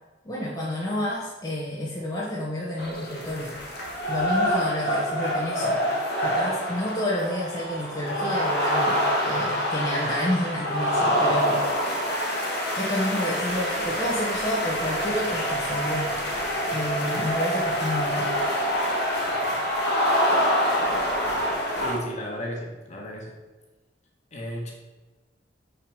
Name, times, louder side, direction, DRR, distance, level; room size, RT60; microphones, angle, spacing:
voice 1, 0.2-3.6 4.1-5.8 6.2-9.0 9.3-11.6 12.8-16.1 16.7-18.3, left 1 dB, 20° left, -6 dB, 1.0 m, -29 dB
sound 1, 2.8-22.0, equal, 60° left, 1.8 m, -26 dB
voice 2, 21.8-23.4 24.3-24.7, equal, 40° left, -1 dB, 1.6 m, -34 dB
6.0 x 4.9 x 5.0 m, 1.2 s
head